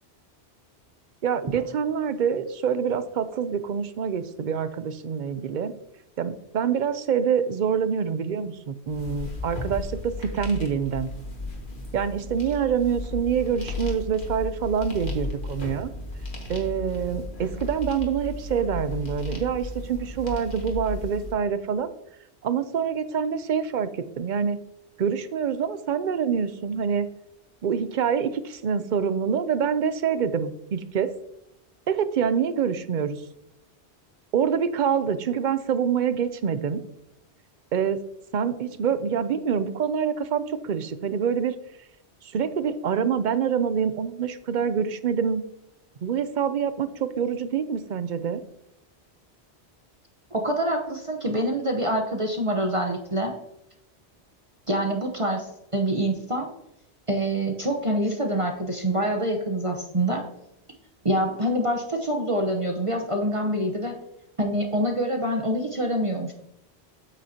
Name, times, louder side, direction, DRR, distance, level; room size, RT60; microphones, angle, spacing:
voice 1, 1.2-5.7 6.2-11.1 11.9-15.9 16.5-21.9 22.4-24.6 25.0-27.1 27.6-31.1 31.9-33.2 34.3-36.8 37.7-38.0 38.3-41.5 42.3-45.4 46.0-48.4, right 7 dB, 55° right, 13 dB, 0.6 m, -26 dB
sound 1, 8.9-21.3, left 2 dB, 50° left, 1.8 m, -35 dB
voice 2, 50.3-53.3 54.7-55.5 55.7-56.5 57.1-60.2 61.0-64.0 64.4-66.3, right 1 dB, 30° right, 3 dB, 0.9 m, -25 dB
8.6 x 8.0 x 2.8 m, 0.83 s
omnidirectional pair, 1.1 m